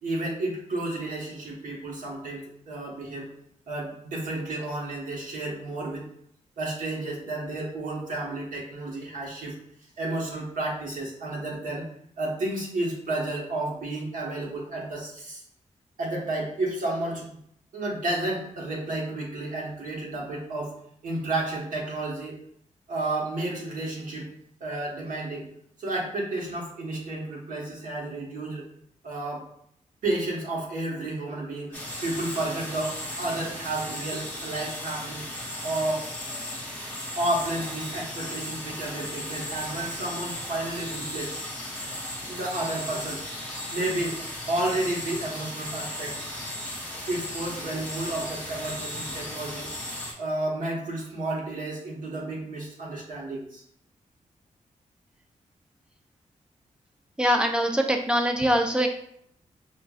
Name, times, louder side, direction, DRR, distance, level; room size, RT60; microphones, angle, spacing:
voice 1, 0.0-3.3 3.7-6.0 6.6-9.5 10.0-11.9 12.2-15.4 16.0-17.3 17.7-20.7 21.0-22.3 22.9-24.3 24.6-25.5 25.8-28.6 29.0-29.5 30.0-35.2 35.6-36.1 37.2-41.4 42.3-43.2 43.7-44.2 44.5-46.1 47.1-49.7 50.2-53.6, right 2 dB, 90° right, -3 dB, 1.2 m, -31 dB
sound 1, 31.7-50.1, left 1 dB, 10° left, 0.9 m, -36 dB
voice 2, 57.2-58.9, equal, 5° right, 3 dB, 0.4 m, -23 dB
5.7 x 2.5 x 2.4 m, 0.69 s
wide cardioid pair, 170°, 13 cm